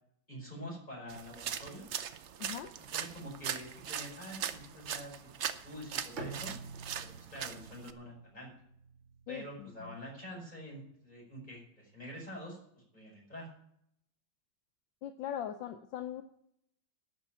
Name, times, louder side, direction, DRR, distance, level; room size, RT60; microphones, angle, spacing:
voice 1, 0.3-1.9 2.9-6.6 7.0-8.5 9.3-12.6 12.9-13.5, equal, 20° left, -2 dB, 5.5 m, -46 dB
sound 1, 1.1-7.9, right 8 dB, 70° right, 0.6 m, -40 dB
voice 2, 2.4-2.7 9.3-9.9 15.0-16.2, left 10 dB, 75° left, 8 dB, 1.4 m, -40 dB
Bowed string instrument, 6.2-10.1, right 4 dB, 45° right, 1.3 m, -48 dB
12.0 x 6.3 x 8.7 m, 0.73 s
omnidirectional pair, 2.1 m